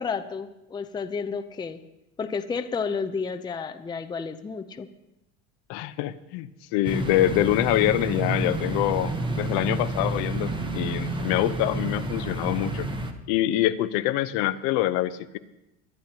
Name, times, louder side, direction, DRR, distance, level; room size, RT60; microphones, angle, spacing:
voice 1, 0.0-1.8 2.2-4.9 6.9-7.0, left 5 dB, 10° left, 8 dB, 0.5 m, -31 dB
voice 2, 5.7-12.9 13.3-15.4, left 14 dB, 65° left, 13 dB, 0.8 m, -25 dB
sound 1, 6.8-13.1, right 2 dB, 15° right, 1.0 m, -30 dB
21.5 x 10.0 x 2.9 m, 0.91 s
supercardioid pair, 115°, 35 cm